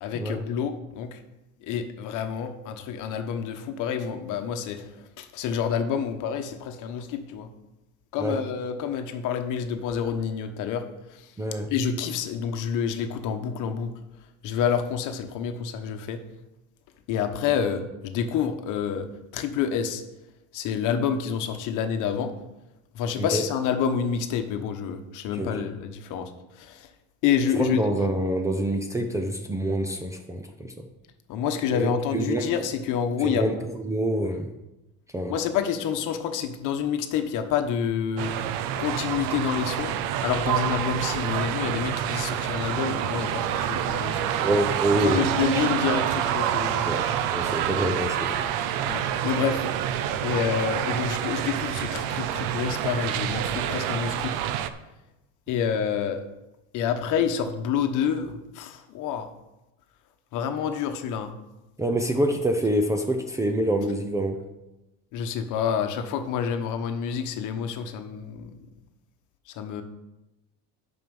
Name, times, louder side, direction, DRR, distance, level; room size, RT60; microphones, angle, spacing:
voice 1, 0.0-1.2 1.6-7.5 8.1-10.8 11.1-11.3 11.7-13.9 14.4-16.2 17.1-19.1 19.3-20.0 20.5-22.3 22.9-26.9 27.2-27.8 31.3-33.5 35.3-38.3 38.8-39.9 40.2-44.3 45.0-46.8 48.8-49.6 50.2-54.4 55.5-56.2 56.7-59.3 60.3-61.3 65.1-68.6 69.5-69.8, left 7 dB, 50° left, 7 dB, 1.2 m, -28 dB
voice 2, 11.4-11.7 23.2-23.4 25.3-25.7 27.6-30.9 31.7-31.9 32.1-32.6 33.2-34.5 35.1-35.4 44.3-45.3 46.9-48.4 61.8-64.5, right 1 dB, 10° right, 4 dB, 0.6 m, -26 dB
sound 1, 38.2-54.7, right 10 dB, 60° right, 0.7 m, -27 dB
9.2 x 6.1 x 5.4 m, 0.99 s
cardioid pair, 140°, 38 cm